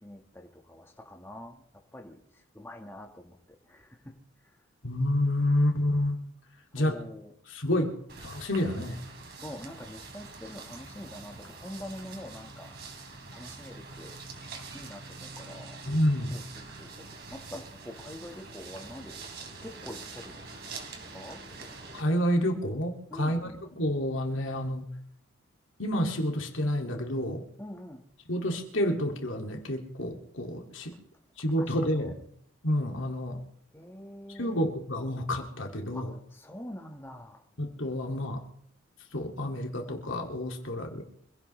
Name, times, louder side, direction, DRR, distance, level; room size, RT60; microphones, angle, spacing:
voice 1, 0.0-1.6 1.9-4.2 6.7-7.3 9.4-14.2 14.7-15.8 16.3-16.9 17.3-19.3 19.6-20.6 21.1-21.8 23.1-23.5 27.6-28.1 31.6-32.1 33.7-34.6 35.9-37.4, left 1 dB, 10° left, 2 dB, 1.4 m, -45 dB
voice 2, 4.8-6.2 6.7-7.0 7.5-7.9 8.2-9.0 15.9-16.4 21.9-24.8 25.8-27.4 28.3-30.9 31.4-32.2 32.6-33.4 34.4-36.1 37.6-38.4 39.1-41.0, left 1 dB, 70° left, 3 dB, 2.3 m, -29 dB
sound 1, 8.1-22.0, right 3 dB, 50° right, 3.2 m, -45 dB
25.0 x 16.5 x 3.2 m, 0.68 s
head